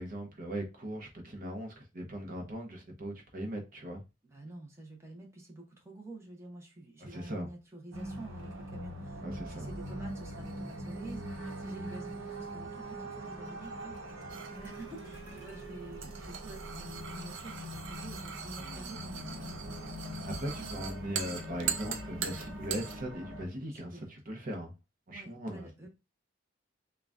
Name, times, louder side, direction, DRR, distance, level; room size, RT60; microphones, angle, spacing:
voice 1, 0.0-4.0 7.0-7.5 9.2-9.7 20.3-24.7 25.1-25.9, equal, 45° right, 0.8 m, -39 dB
voice 2, 4.3-19.9 20.6-20.7 23.8-24.1 25.1-25.9, right 2 dB, 15° right, 0.9 m, -48 dB
sound 1, 7.9-23.5, equal, 85° right, 1.0 m, -42 dB
sound 2, 14.3-23.0, right 7 dB, 70° right, 0.6 m, -41 dB
3.7 x 2.3 x 3.5 m
head